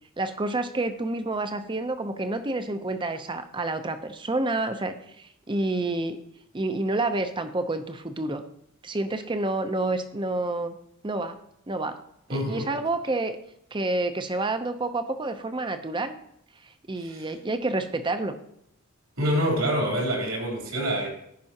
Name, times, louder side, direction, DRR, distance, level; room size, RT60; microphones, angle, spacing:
voice 1, 0.2-6.2 6.5-8.4 8.8-10.7 11.0-11.4 11.7-12.0 12.3-13.4 13.7-16.1 16.9-18.4, right 2 dB, 20° right, 9 dB, 0.6 m, -29 dB
voice 2, 12.3-12.7 17.0-17.3 19.2-21.1, equal, 80° right, -1 dB, 3.3 m, -26 dB
15.5 x 5.5 x 2.8 m, 0.76 s
head